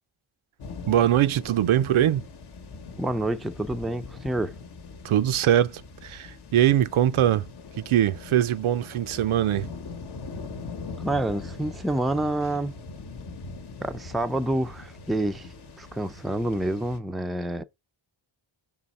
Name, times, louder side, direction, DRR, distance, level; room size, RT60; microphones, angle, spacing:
sound 1, 0.6-17.0, left 4 dB, 55° left, 1.0 m, -41 dB
voice 1, 0.9-2.3 5.0-7.4 7.8-9.7, right 11 dB, 80° right, 0.7 m, -22 dB
voice 2, 3.0-4.5 11.0-12.8 13.8-17.6, right 1 dB, ahead, 0.4 m, -28 dB
6.1 x 3.7 x 4.2 m
wide cardioid pair, 95°, 49 cm